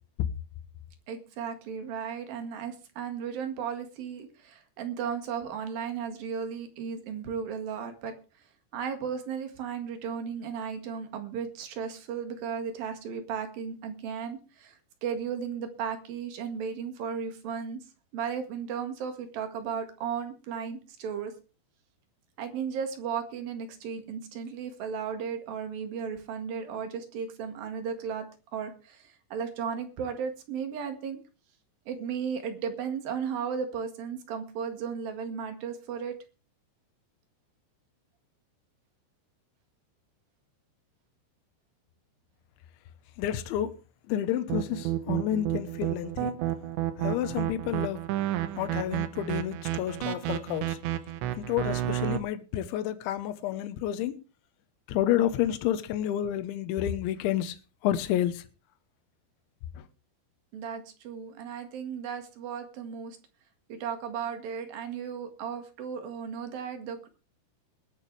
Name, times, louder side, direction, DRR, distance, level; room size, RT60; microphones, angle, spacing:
voice 1, 1.1-8.1 8.7-17.8 18.1-21.3 22.4-28.3 28.5-31.2 31.9-36.2 60.5-63.2 63.7-67.1, right 7 dB, 55° right, 3.0 m, -35 dB
voice 2, 43.2-43.7 44.1-46.3 47.0-48.1 48.6-50.8 51.4-54.2 54.9-57.6 57.8-58.4, left 11 dB, 75° left, 3.2 m, -30 dB
sound 1, 44.5-52.2, right 13 dB, 75° right, 2.9 m, -30 dB
21.0 x 10.5 x 3.3 m
omnidirectional pair, 5.9 m